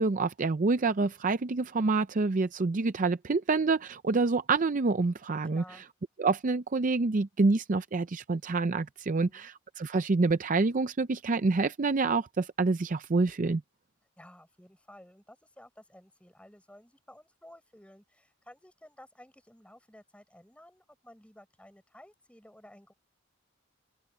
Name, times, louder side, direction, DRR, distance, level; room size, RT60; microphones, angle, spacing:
voice 1, 0.0-5.6 6.2-13.6, right 3 dB, 40° right, 0.5 m, -27 dB
voice 2, 5.5-5.8 9.1-9.5 14.2-22.9, left 1 dB, 5° left, 6.6 m, -54 dB
open air
head